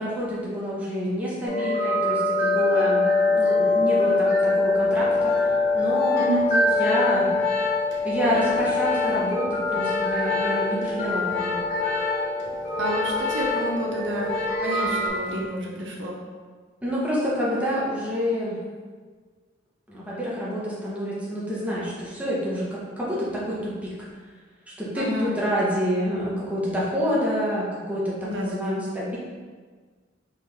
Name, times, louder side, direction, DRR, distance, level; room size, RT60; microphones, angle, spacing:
voice 1, 0.0-5.5 5.7-7.3 8.0-11.6 16.8-18.6 19.9-23.9 24.8-29.2, equal, 10° right, -7 dB, 0.9 m, -28 dB
sound 1, 1.5-15.1, left 2 dB, 45° left, 1.0 m, -24 dB
Organ, 4.9-14.9 15.1-15.5, left 5 dB, 85° left, 0.9 m, -30 dB
voice 2, 6.2-6.5 12.8-16.2 24.9-25.3 28.2-28.8, right 1 dB, 75° right, -2 dB, 0.7 m, -29 dB
3.9 x 3.2 x 3.2 m, 1.5 s
head